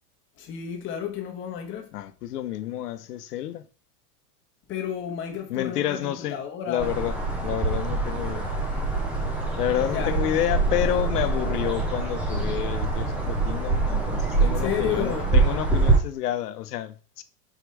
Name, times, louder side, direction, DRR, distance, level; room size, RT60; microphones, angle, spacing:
voice 1, 0.4-1.9 4.7-6.9 9.8-10.2 14.4-15.4, left 9 dB, 25° left, 1.2 m, -31 dB
voice 2, 1.9-3.6 5.5-6.4 6.7-8.5 9.6-17.2, left 12 dB, 75° left, 1.0 m, -29 dB
sound 1, 6.8-16.0, right 3 dB, 5° right, 0.4 m, -25 dB
5.2 x 4.9 x 4.7 m
supercardioid pair, 145°, 47 cm